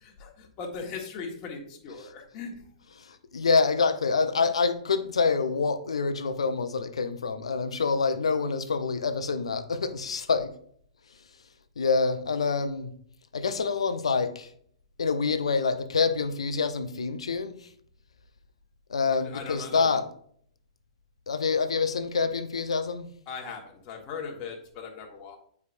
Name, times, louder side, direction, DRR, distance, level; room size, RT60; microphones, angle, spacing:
voice 1, 0.0-2.5 19.2-20.0 23.3-25.4, left 5 dB, 35° left, 2 dB, 1.4 m, -39 dB
voice 2, 3.0-10.5 11.1-11.3 11.8-12.9 13.3-14.5 15.0-17.7 18.9-20.1 21.3-23.1, left 4 dB, 75° left, 10 dB, 0.6 m, -26 dB
8.1 x 4.7 x 2.6 m, 0.62 s
figure-of-eight pair, 115°, 3 cm